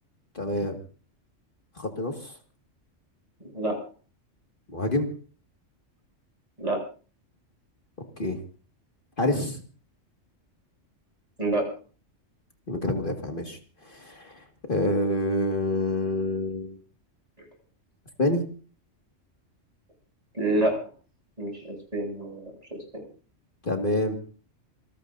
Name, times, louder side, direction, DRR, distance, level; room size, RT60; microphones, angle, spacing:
voice 1, 0.4-0.8 1.8-2.3 4.7-5.1 8.2-8.4 9.2-9.6 12.7-14.4 14.7-16.8 18.2-18.4 23.6-24.2, left 1 dB, 45° left, 3 dB, 2.2 m, -27 dB
voice 2, 20.3-20.7 21.4-23.1, right 2 dB, 30° right, 1 dB, 7.6 m, -28 dB
27.5 x 18.5 x 2.7 m, 0.39 s
omnidirectional pair, 1.3 m